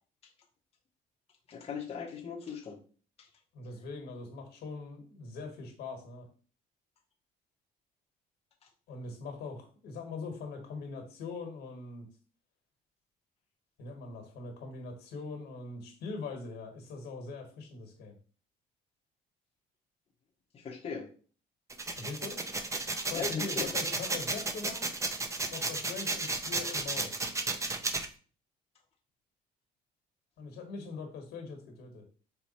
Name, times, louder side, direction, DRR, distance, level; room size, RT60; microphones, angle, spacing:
voice 1, 1.5-2.8 3.2-3.3 20.5-21.1 23.1-23.7, left 6 dB, 40° left, -1 dB, 0.8 m, -39 dB
voice 2, 3.5-6.3 8.9-12.1 13.8-18.2 21.9-22.4 23.1-24.9 25.5-27.1 30.4-32.0, left 4 dB, 75° left, 3 dB, 1.4 m, -42 dB
sound 1, 21.7-28.1, right 3 dB, 20° right, 0.5 m, -33 dB
4.6 x 2.2 x 4.1 m, 0.40 s
cardioid pair, 110°, 17 cm